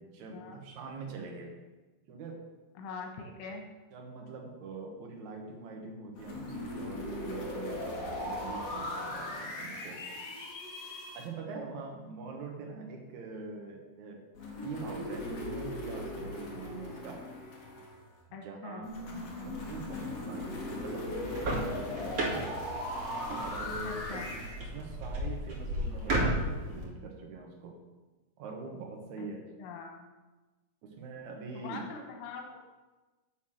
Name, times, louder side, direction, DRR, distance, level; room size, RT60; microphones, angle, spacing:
voice 1, 0.0-1.5 2.1-2.5 3.9-10.0 11.1-14.2 14.6-17.3 18.3-18.9 19.4-22.5 23.3-24.1 24.6-27.8 28.4-29.4 30.8-31.8, right 4 dB, 70° right, 0 dB, 1.8 m, -43 dB
voice 2, 2.8-3.7 18.3-18.9 23.8-24.3 29.2-29.3 29.6-30.1 31.5-32.7, left 4 dB, 85° left, 2 dB, 3.6 m, -43 dB
sound 1, 6.2-11.2 14.3-18.1 18.8-24.6, left 1 dB, 70° left, 1.4 m, -38 dB
sound 2, 21.1-26.8, right 1 dB, 45° right, 2.3 m, -34 dB
9.3 x 5.8 x 6.4 m, 1.2 s
omnidirectional pair, 5.3 m